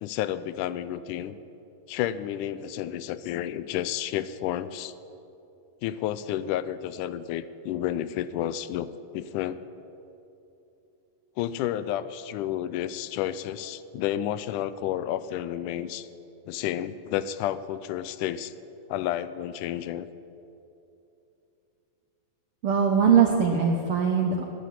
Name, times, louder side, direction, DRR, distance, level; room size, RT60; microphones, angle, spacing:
voice 1, 0.0-1.4 1.9-4.9 5.8-9.6 11.4-16.1 16.5-18.5 18.9-20.1, left 11 dB, 85° left, 14 dB, 2.1 m, -31 dB
voice 2, 22.6-24.4, right 6 dB, 75° right, 2 dB, 1.2 m, -21 dB
11.0 x 9.5 x 9.9 m, 2.8 s
omnidirectional pair, 3.6 m